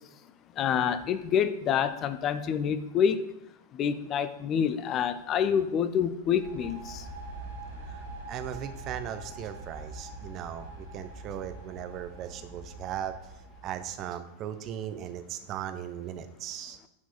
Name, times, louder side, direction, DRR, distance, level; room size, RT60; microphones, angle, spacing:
voice 1, 0.6-3.3 3.7-7.0, left 8 dB, 30° left, 12 dB, 0.6 m, -27 dB
sound 1, 6.2-14.0, right 2 dB, 65° right, 1.9 m, -44 dB
voice 2, 7.8-13.1 13.6-16.8, right 10 dB, 35° right, 9 dB, 0.7 m, -38 dB
9.6 x 4.7 x 4.3 m, 0.83 s
figure-of-eight pair, 90°, 0 cm